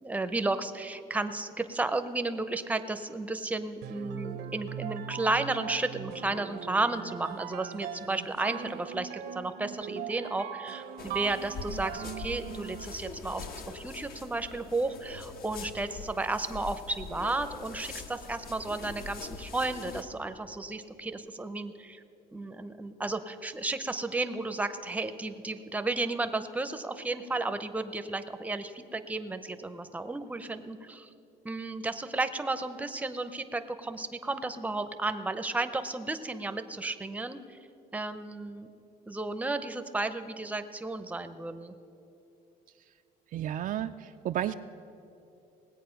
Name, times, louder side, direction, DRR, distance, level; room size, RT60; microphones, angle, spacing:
voice 1, 0.0-22.0 22.3-31.1 31.4-37.6 37.9-38.7 39.1-41.7, right 2 dB, 10° right, 9 dB, 0.6 m, -33 dB
sound 1, 3.8-13.0, right 9 dB, 75° right, 0.8 m, -40 dB
sound 2, 11.0-20.0, left 4 dB, 60° left, 1.1 m, -43 dB
voice 2, 43.3-44.5, right 11 dB, 55° right, 8 dB, 0.4 m, -32 dB
19.0 x 8.3 x 5.7 m, 2.9 s
cardioid pair, 110°, 17 cm